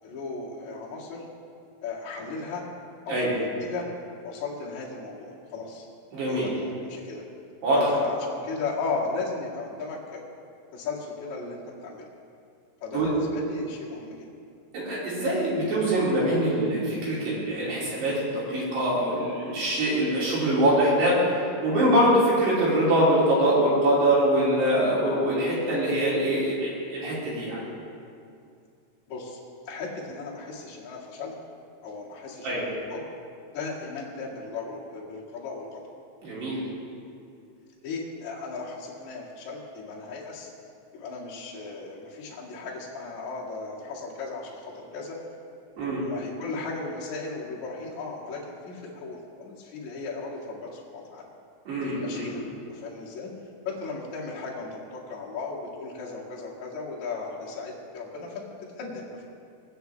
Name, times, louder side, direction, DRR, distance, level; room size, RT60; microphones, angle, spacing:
voice 1, 0.0-1.3 1.8-2.7 3.0-3.9 4.2-5.9 6.3-7.2 7.7-10.2 10.7-12.1 12.8-14.3 29.1-31.3 31.8-32.6 32.9-33.0 33.5-35.8 37.8-40.5 40.9-45.2 46.0-51.2 51.8-52.4 52.7-53.3 53.6-58.4 58.8-59.2, left 4 dB, 50° left, -6 dB, 2.6 m, -36 dB
voice 2, 6.1-6.5 7.6-8.0 12.9-13.1 14.7-27.6 32.4-32.7 36.2-36.6 45.8-46.0 51.7-52.3, right 1 dB, 60° right, -7 dB, 4.7 m, -24 dB
19.5 x 9.6 x 3.4 m, 2.4 s
omnidirectional pair, 5.8 m